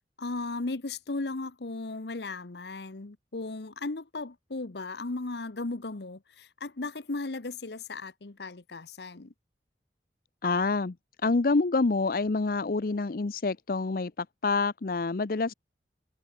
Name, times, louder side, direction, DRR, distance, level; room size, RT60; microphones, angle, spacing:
voice 1, 0.2-9.3, left 3 dB, 70° left, 1.0 m, -36 dB
voice 2, 10.4-11.0 11.2-15.5, left 3 dB, 50° left, 0.6 m, -27 dB
head